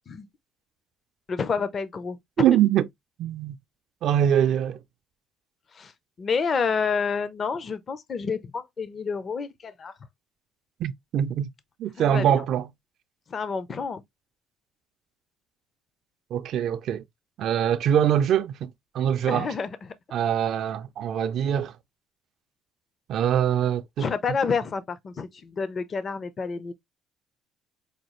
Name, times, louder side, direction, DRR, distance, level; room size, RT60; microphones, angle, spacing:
voice 1, 1.3-2.5 5.7-5.9 6.2-9.9 12.0-12.4 13.3-14.0 19.3-19.9 24.0-26.7, left 5 dB, 40° left, 0.5 m, -29 dB
voice 2, 2.4-2.9 3.2-3.6 4.0-4.8 10.8-11.5 11.8-12.7 16.3-17.0 17.4-19.5 20.1-21.7 23.1-24.1, right 10 dB, 65° right, 0.4 m, -23 dB
5.0 x 2.3 x 3.0 m
cardioid pair, 105°, 0 cm